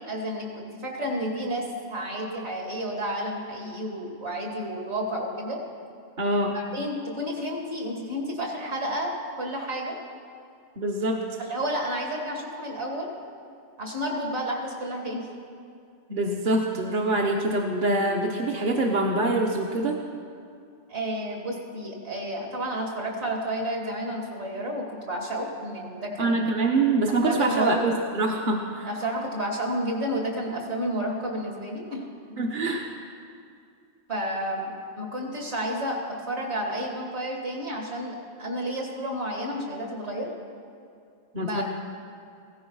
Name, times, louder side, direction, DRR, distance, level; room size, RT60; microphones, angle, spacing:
voice 1, 0.0-5.6 6.5-10.0 11.4-13.1 13.8-15.3 20.9-26.4 27.1-27.8 28.8-32.0 34.1-34.7 35.0-40.3 41.4-41.6, equal, 60° right, 0 dB, 2.6 m, -31 dB
voice 2, 6.2-6.6 10.8-11.3 16.1-20.0 26.2-28.9 32.4-32.9 41.3-41.6, right 2 dB, 45° right, 0 dB, 1.1 m, -25 dB
16.0 x 13.0 x 5.5 m, 2.4 s
omnidirectional pair, 1.3 m